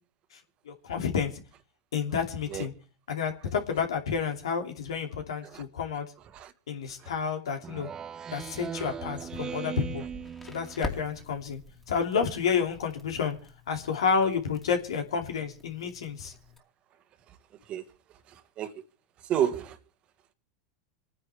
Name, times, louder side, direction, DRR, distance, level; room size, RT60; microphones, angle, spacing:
voice 1, 0.7-1.3 1.9-2.7 3.1-6.1 6.7-7.9 8.3-10.0 10.5-11.6 11.9-13.4 13.7-16.3, left 6 dB, 80° left, 2.7 m, -30 dB
Speech synthesizer, 7.6-11.1, right 7 dB, 25° right, 0.6 m, -39 dB
Crackle, 10.0-16.6, left 2 dB, 10° left, 2.5 m, -45 dB
voice 2, 18.3-18.7 19.2-19.8, right 10 dB, 40° right, 1.6 m, -31 dB
28.0 x 9.9 x 3.4 m
hypercardioid pair, 100°, 3 cm